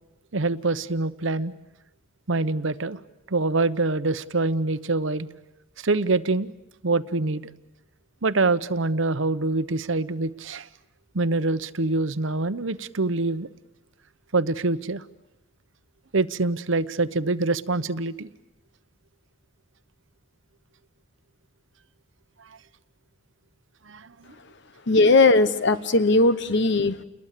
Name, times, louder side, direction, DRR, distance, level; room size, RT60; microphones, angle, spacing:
voice 1, 0.3-1.5 2.3-3.0 3.3-5.3 5.8-6.5 6.8-7.4 8.2-10.7 11.1-13.5 14.3-15.0 16.1-18.3 23.9-24.3, right 3 dB, 70° right, 14 dB, 1.0 m, -25 dB
voice 2, 24.9-27.0, left 3 dB, 60° left, 13 dB, 1.1 m, -18 dB
29.5 x 21.5 x 8.4 m, 0.94 s
head